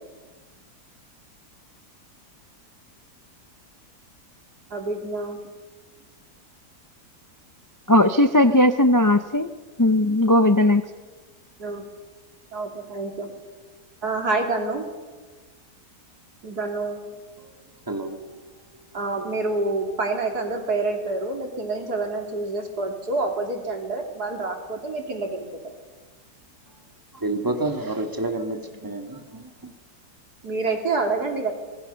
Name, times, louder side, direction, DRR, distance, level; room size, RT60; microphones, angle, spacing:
voice 1, 4.7-5.4 11.6-11.8 12.5-13.3 14.0-14.9 16.4-17.0 18.9-25.5 30.4-31.5, right 3 dB, 70° right, 3.7 m, -27 dB
voice 2, 7.9-9.5 9.8-10.8, left 1 dB, 25° left, 0.4 m, -17 dB
voice 3, 17.4-18.4 19.2-19.3 27.1-29.7, right 2 dB, 10° right, 2.2 m, -30 dB
26.0 x 20.5 x 6.9 m
omnidirectional pair, 1.7 m